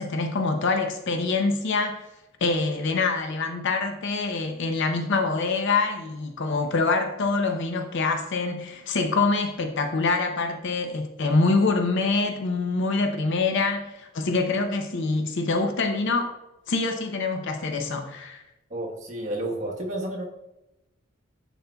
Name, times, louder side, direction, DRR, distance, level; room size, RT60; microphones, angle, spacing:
voice 1, 0.0-2.0 2.4-16.3 16.7-18.4, left 3 dB, 65° left, 5 dB, 0.6 m, -25 dB
voice 2, 18.7-20.2, right 1 dB, 40° right, -2 dB, 1.3 m, -31 dB
10.5 x 4.2 x 2.3 m, 0.92 s
head